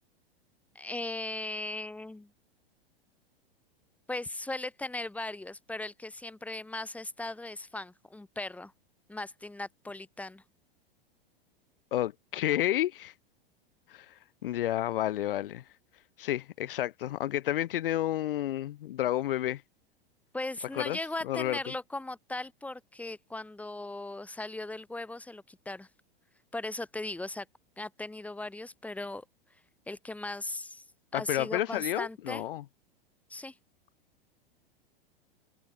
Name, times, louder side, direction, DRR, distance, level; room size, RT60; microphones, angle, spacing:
voice 1, 0.7-2.3 4.1-8.7 9.1-10.4 20.3-25.9 26.5-27.5 27.8-29.2 29.9-30.8 31.1-32.4 33.3-33.5, left 2 dB, 5° left, 1.3 m, -38 dB
voice 2, 11.9-13.1 13.9-14.1 14.4-15.6 16.2-19.6 20.7-21.0 21.2-21.6 31.1-32.6, left 13 dB, 65° left, 1.3 m, -30 dB
figure-of-eight pair, 95°, 30 cm